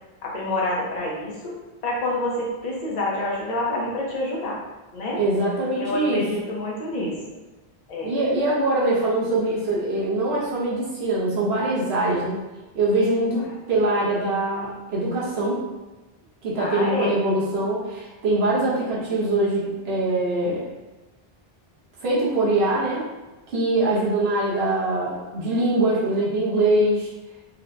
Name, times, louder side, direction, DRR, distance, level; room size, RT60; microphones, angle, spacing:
voice 1, 0.2-1.6 1.8-4.6 4.9-5.2 5.7-7.4 7.9-8.2 16.6-17.2, left 1 dB, 45° left, -4 dB, 0.8 m, -27 dB
voice 2, 5.2-6.3 8.0-12.4 12.7-15.6 16.4-20.6 22.0-23.0 23.5-27.1, right 2 dB, 90° right, -7 dB, 1.1 m, -23 dB
4.3 x 2.2 x 2.5 m, 1.1 s
omnidirectional pair, 1.0 m